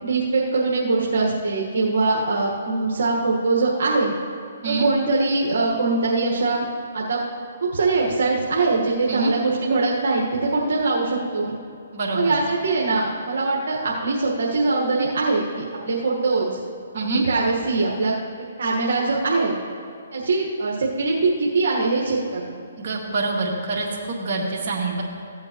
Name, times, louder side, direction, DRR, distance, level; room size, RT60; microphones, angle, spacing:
voice 1, 0.0-4.1 4.7-6.6 6.9-7.2 7.6-11.5 12.1-16.5 17.1-18.1 18.6-19.5 20.1-22.5, right 3 dB, 70° right, -3 dB, 1.4 m, -22 dB
voice 2, 11.9-12.3 16.9-17.2 22.8-25.0, right 3 dB, 50° right, -2 dB, 1.9 m, -25 dB
15.5 x 8.5 x 3.0 m, 2.5 s
hypercardioid pair, 145°, 0 cm